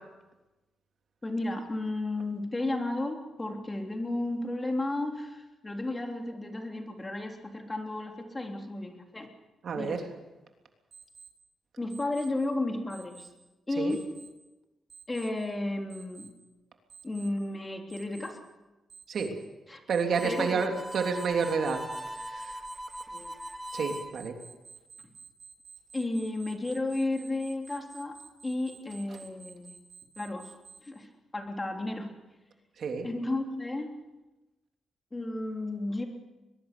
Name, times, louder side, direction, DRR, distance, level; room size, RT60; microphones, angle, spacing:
voice 1, 1.2-9.3 9.7-10.0 11.8-13.3 13.7-14.1 15.1-16.3 17.0-18.5 19.7-19.8 20.2-20.6 23.1-23.3 25.9-28.2 28.4-29.7 30.2-30.5 30.8-31.1 31.3-32.1 33.0-33.9 35.1-36.0, left 2 dB, 20° left, 3 dB, 3.5 m, -33 dB
voice 2, 9.6-10.0 13.8-14.0 19.1-19.3 19.9-21.8 22.1-22.6 23.7-24.3 32.8-33.1, right 5 dB, 65° right, 3 dB, 3.3 m, -30 dB
Alarm, 10.9-11.3 11.9-12.3 12.9-13.3 13.9-14.3 14.9-15.3 15.9-16.3 16.9-17.3 17.9-18.3 18.9-19.3 19.9-20.3 20.9-30.8, right 5 dB, 40° right, 8.0 m, -50 dB
Harmonica, 20.1-24.1, equal, 5° right, 1.6 m, -40 dB
22.0 x 22.0 x 7.0 m, 1.1 s
cardioid pair, 105°, 0 cm